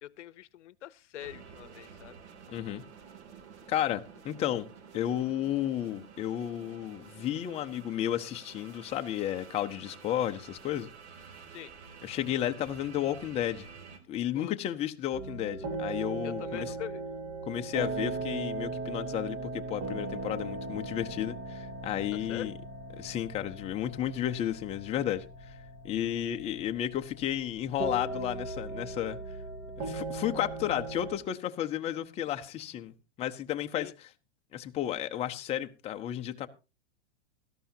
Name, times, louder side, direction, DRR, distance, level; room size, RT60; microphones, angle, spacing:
voice 1, 0.0-2.2 11.5-11.7 14.3-14.5 16.2-17.0 22.1-22.5 33.7-33.9, left 13 dB, 75° left, 0.7 m, -43 dB
sound 1, 1.2-14.0, right 6 dB, 65° right, 2.7 m, -51 dB
voice 2, 2.5-2.8 3.7-4.7 4.9-10.9 12.0-13.7 14.1-16.7 17.5-22.5 23.0-25.5 25.8-29.2 29.8-32.9 33.2-34.1 34.5-36.5, left 11 dB, 15° left, 0.6 m, -33 dB
sound 2, 15.1-31.2, right 2 dB, 35° right, 2.0 m, -38 dB
17.5 x 13.0 x 2.7 m
hypercardioid pair, 135°, 36 cm